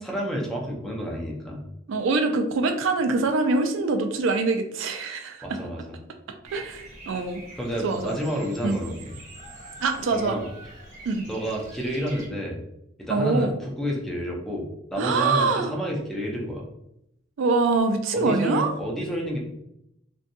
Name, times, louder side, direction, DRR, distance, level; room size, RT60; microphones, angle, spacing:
voice 1, 0.0-1.6 5.4-6.0 7.6-9.1 10.1-10.5 11.3-12.6 13.0-16.6 18.1-19.4, equal, ahead, -2 dB, 0.5 m, -30 dB
voice 2, 1.9-5.6 6.5-7.4 7.8-8.2 8.6-8.8 9.8-10.3 11.1-11.3 13.1-13.6 15.0-15.7 17.4-18.7, right 3 dB, 80° right, 6 dB, 0.3 m, -24 dB
Bird vocalization bird call bird song, 6.4-12.3, right 1 dB, 40° right, 0.8 m, -45 dB
2.6 x 2.2 x 2.6 m, 0.79 s
head